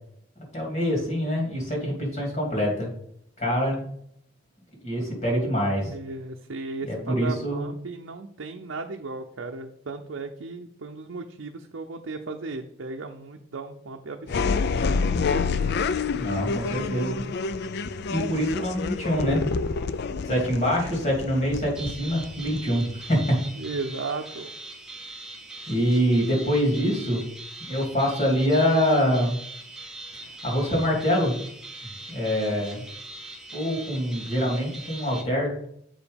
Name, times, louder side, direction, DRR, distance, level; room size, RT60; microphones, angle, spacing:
voice 1, 0.5-2.9 3.4-3.8 4.8-5.9 6.8-7.7 16.1-17.2 18.1-19.4 20.2-23.4 25.7-27.2 27.7-29.4 30.4-31.4 32.1-32.8 33.5-35.5, equal, 40° left, -1 dB, 2.8 m, -25 dB
voice 2, 5.9-15.0 23.6-24.5, right 3 dB, 70° right, 3 dB, 0.6 m, -36 dB
sound 1, 14.3-22.9, left 4 dB, 55° left, 0.4 m, -28 dB
sound 2, 21.7-35.2, right 2 dB, 5° right, 1.0 m, -41 dB
7.5 x 5.0 x 5.2 m, 0.68 s
head